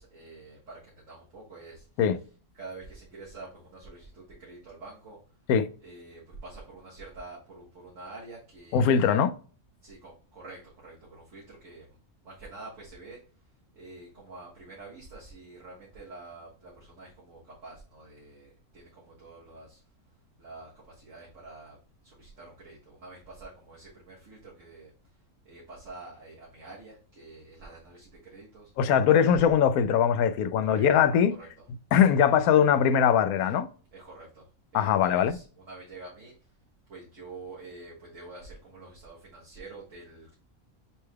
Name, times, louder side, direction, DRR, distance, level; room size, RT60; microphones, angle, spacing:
voice 1, 0.0-1.9 2.5-5.2 5.8-9.2 9.8-11.9 12.2-13.2 13.7-19.8 20.4-21.8 22.0-24.9 25.5-28.7 30.6-30.8 31.4-31.5 33.9-34.5 34.7-36.3 36.9-40.3, right 3 dB, 60° right, 1.9 m, -47 dB
voice 2, 8.7-9.3 28.8-31.4 31.9-33.7 34.7-35.4, left 8 dB, 85° left, 1.1 m, -21 dB
7.1 x 3.4 x 2.2 m
omnidirectional pair, 1.5 m